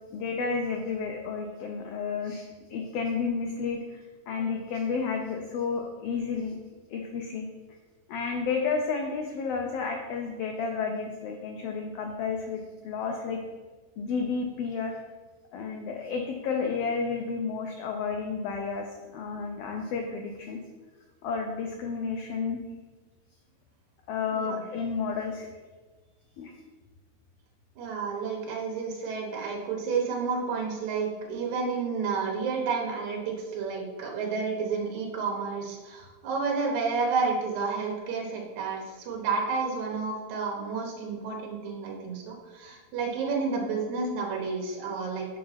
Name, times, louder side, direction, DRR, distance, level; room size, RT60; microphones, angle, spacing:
voice 1, 0.1-2.4 2.7-6.6 6.9-7.5 8.1-13.4 14.0-15.0 15.5-20.6 21.2-22.6 24.1-25.5 26.4-26.5, left 5 dB, 75° left, 2 dB, 1.4 m, -31 dB
voice 2, 27.8-45.3, right 5 dB, 80° right, 0 dB, 2.3 m, -30 dB
6.6 x 3.9 x 5.6 m, 1.3 s
omnidirectional pair, 3.3 m